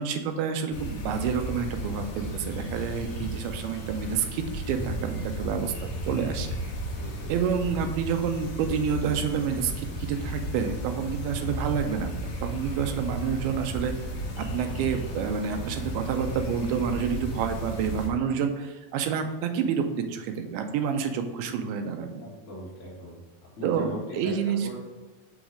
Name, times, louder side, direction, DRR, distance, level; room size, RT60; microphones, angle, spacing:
voice 1, 0.0-6.6 7.3-14.1 14.4-22.3 23.6-24.8, right 7 dB, 90° right, 6 dB, 2.5 m, -29 dB
sound 1, 0.7-18.1, equal, 90° left, 1.1 m, -34 dB
voice 2, 6.9-7.3 22.2-23.2 23.6-24.3 24.6-24.8, left 1 dB, 55° left, -6 dB, 0.8 m, -40 dB
6.4 x 3.1 x 4.9 m, 1.2 s
omnidirectional pair, 4.3 m